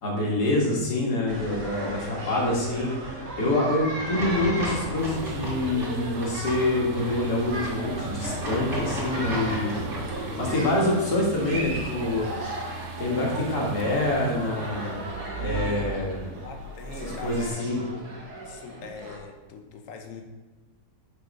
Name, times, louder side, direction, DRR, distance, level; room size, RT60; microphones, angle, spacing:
voice 1, 0.0-2.9 3.4-9.7 10.4-12.3 13.0-15.0 15.4-16.3 17.0-17.8, left 1 dB, 85° left, -2 dB, 2.2 m, -26 dB
sound 1, 1.3-19.2, right 1 dB, 90° right, 1.8 m, -36 dB
sound 2, 3.9-10.5, right 1 dB, 50° right, 2.4 m, -34 dB
sound 3, 5.0-17.5, right 5 dB, 65° right, 0.8 m, -40 dB
voice 2, 15.3-18.1 18.4-20.2, left 5 dB, 60° left, 4 dB, 1.1 m, -42 dB
6.8 x 4.2 x 5.3 m, 1.2 s
omnidirectional pair, 1.6 m